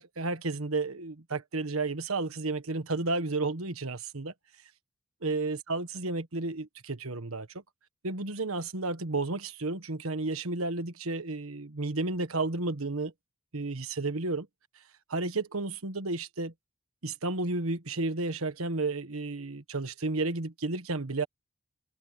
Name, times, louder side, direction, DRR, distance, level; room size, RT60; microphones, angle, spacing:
voice 1, 0.0-4.3 5.2-7.5 8.0-13.1 13.5-14.5 15.1-16.5 17.0-21.3, right 3 dB, 90° right, 1.4 m, -32 dB
head